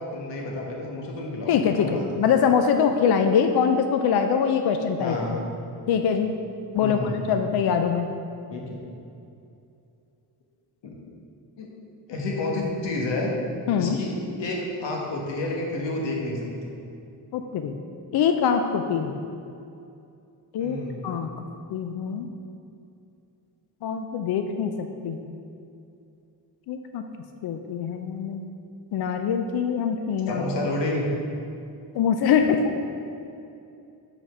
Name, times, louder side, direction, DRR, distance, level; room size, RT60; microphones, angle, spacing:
voice 1, 0.0-2.0 5.0-5.4 6.8-7.2 8.5-8.8 10.8-11.0 11.6-11.7 12.1-13.3 13.7-14.1 14.4-16.7 20.6-21.0 30.3-31.1, left 2 dB, 85° left, -1 dB, 1.3 m, -30 dB
voice 2, 1.5-5.4 5.9-6.3 6.7-8.1 13.7-14.0 17.3-17.8 18.1-19.2 20.5-20.8 21.0-21.3 21.7-22.3 23.8-25.2 26.7-27.0 27.4-28.4 28.9-30.4 31.9-32.6, left 7 dB, 65° left, 6 dB, 0.5 m, -23 dB
5.3 x 4.1 x 6.0 m, 2.6 s
cardioid pair, 115°, 42 cm